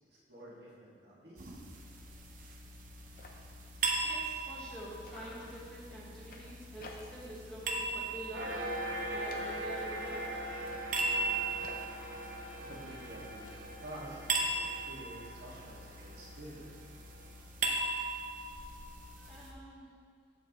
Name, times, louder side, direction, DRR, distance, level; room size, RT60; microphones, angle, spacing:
voice 1, 0.3-1.6 12.6-13.5 13.8-16.7 18.6-18.7, right 1 dB, 65° right, -7 dB, 1.9 m, -49 dB
sound 1, 1.4-19.5, right 3 dB, 45° right, 0.7 m, -39 dB
sound 2, 1.9-2.1 2.5-2.6 2.8-4.8 5.0-7.4 7.7-8.1 8.4-9.9 10.5-13.5, left 3 dB, 50° left, 0.7 m, -55 dB
voice 2, 4.0-10.4 19.2-19.9, right 1 dB, 5° left, -7 dB, 1.3 m, -47 dB
sound 3, 8.3-17.3, right 1 dB, 85° right, 1.1 m, -41 dB
7.7 x 7.0 x 3.1 m, 2.1 s
head